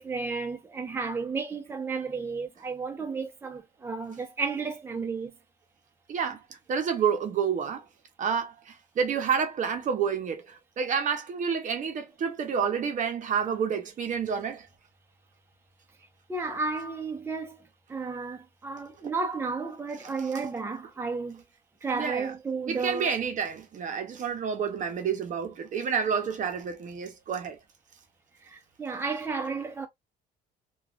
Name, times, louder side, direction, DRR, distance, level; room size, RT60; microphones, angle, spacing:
voice 1, 0.0-5.3 16.3-21.4 21.8-23.2 28.4-29.9, right 4 dB, 15° right, 0.7 m, -33 dB
voice 2, 6.1-6.4 6.7-7.9 8.2-14.7 21.9-22.3 22.7-27.6, right 6 dB, 50° right, 0.7 m, -29 dB
3.0 x 2.3 x 2.4 m
cardioid pair, 110°, 17 cm